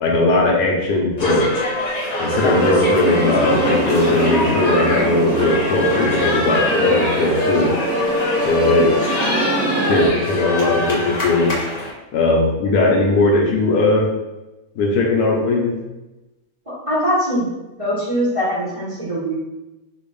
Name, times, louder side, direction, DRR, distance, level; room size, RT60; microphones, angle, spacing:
voice 1, 0.0-1.5 2.2-7.7 8.4-9.0 9.8-11.5 12.1-14.1 14.8-15.8, left 2 dB, 60° left, -1 dB, 1.2 m, -18 dB
sound 1, 1.2-11.9, left 1 dB, 80° left, 0.3 m, -24 dB
sound 2, 2.3-10.1, right 1 dB, 65° right, 0.9 m, -23 dB
voice 2, 16.9-17.4 17.8-19.4, equal, 25° right, -8 dB, 0.8 m, -21 dB
4.3 x 3.0 x 3.4 m, 1.0 s
omnidirectional pair, 2.1 m